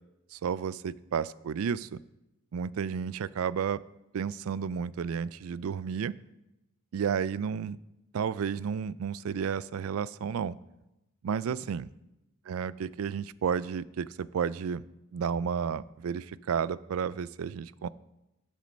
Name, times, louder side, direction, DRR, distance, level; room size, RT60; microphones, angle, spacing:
voice 1, 0.3-2.0 2.5-3.8 4.1-6.1 6.9-7.8 8.1-10.6 11.2-11.9 12.5-14.8 15.1-17.9, right 7 dB, 85° right, 19 dB, 0.4 m, -32 dB
12.0 x 6.3 x 5.2 m, 0.93 s
head